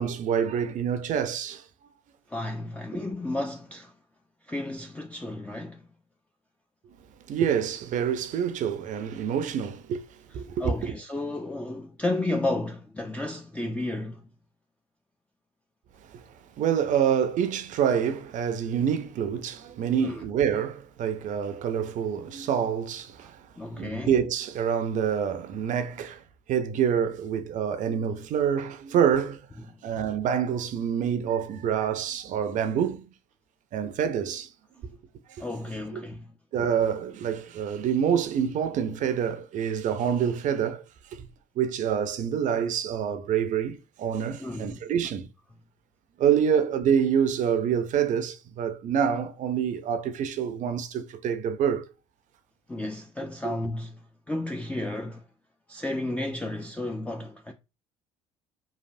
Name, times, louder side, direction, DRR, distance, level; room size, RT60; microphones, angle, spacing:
voice 1, 0.0-1.6 7.3-10.0 10.3-10.9 16.1-16.2 16.6-26.2 26.5-29.4 29.8-33.1 33.7-34.5 35.9-36.0 36.5-40.8 41.1-41.3 41.6-45.3 46.2-51.8 53.4-53.5, right 8 dB, 50° right, 0.5 m, -27 dB
voice 2, 2.3-3.9 4.5-5.9 10.6-14.2 20.0-20.2 23.6-24.1 35.4-36.3 44.4-44.8 46.5-46.6 52.7-54.0 54.3-55.2 55.7-57.5, left 2 dB, 10° left, 0.4 m, -32 dB
3.2 x 2.2 x 2.6 m
hypercardioid pair, 55°, 17 cm